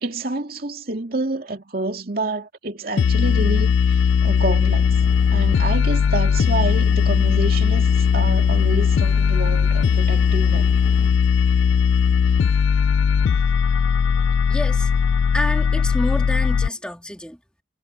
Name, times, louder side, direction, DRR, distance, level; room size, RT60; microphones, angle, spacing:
voice 1, 0.0-4.9 5.3-10.7, right 2 dB, 50° right, 2.6 m, -28 dB
sound 1, 3.0-16.7, left 6 dB, 75° left, 0.3 m, -18 dB
sound 2, 4.8-11.1, left 1 dB, 50° left, 1.4 m, -40 dB
voice 2, 14.5-14.9 15.3-17.4, equal, 5° left, 3.1 m, -28 dB
head